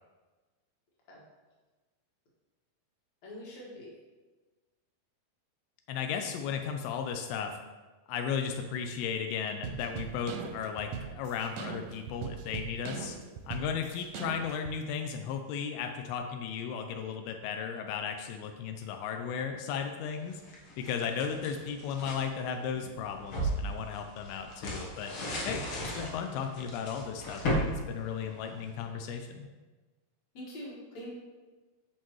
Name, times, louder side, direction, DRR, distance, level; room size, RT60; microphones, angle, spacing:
voice 1, 3.2-3.9 30.3-31.1, equal, 50° left, -4 dB, 2.7 m, -44 dB
voice 2, 5.9-7.6 8.1-13.2 13.5-20.4 20.8-25.1 25.5-29.5, left 7 dB, 85° left, 5 dB, 2.5 m, -35 dB
sound 1, 9.6-14.8, right 6 dB, 85° right, 2.1 m, -40 dB
sound 2, 20.3-22.2 22.7-28.8, equal, 65° left, 1.3 m, -36 dB
13.0 x 4.5 x 3.1 m, 1.3 s
omnidirectional pair, 4.4 m